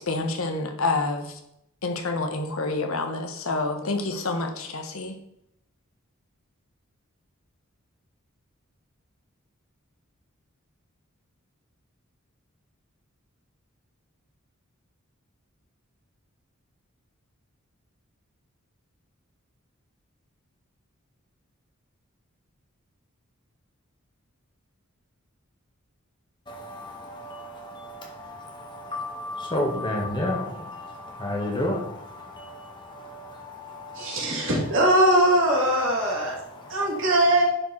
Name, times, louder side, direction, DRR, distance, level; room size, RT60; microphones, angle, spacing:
voice 1, 0.0-1.4 1.8-5.1, left 3 dB, 85° left, 5 dB, 1.3 m, -28 dB
voice 2, 26.5-34.5 36.2-37.0, left 1 dB, 20° left, 0 dB, 1.7 m, -33 dB
voice 3, 33.9-36.3 36.7-37.4, right 1 dB, 60° right, -3 dB, 2.9 m, -21 dB
10.5 x 4.9 x 4.3 m, 0.79 s
head